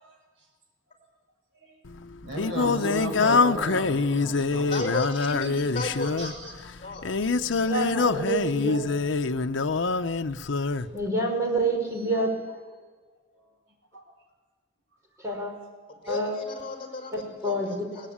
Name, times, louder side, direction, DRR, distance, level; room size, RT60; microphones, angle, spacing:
Singing, 1.9-10.9, left 4 dB, 90° left, 0.7 m, -25 dB
voice 1, 2.2-4.9 6.2-6.5 12.8-12.9 13.9-14.0 15.9-16.1, right 1 dB, 80° right, 0 dB, 7.6 m, -35 dB
voice 2, 2.9-3.7 7.6-8.8 10.9-12.3 15.2-15.5 16.1-16.3 17.1-18.1, right 1 dB, 15° right, 1 dB, 5.2 m, -28 dB
voice 3, 4.7-7.2 10.6-10.9 15.9-18.1, left 2 dB, 30° left, 3 dB, 4.9 m, -35 dB
22.0 x 19.5 x 8.7 m, 1.3 s
head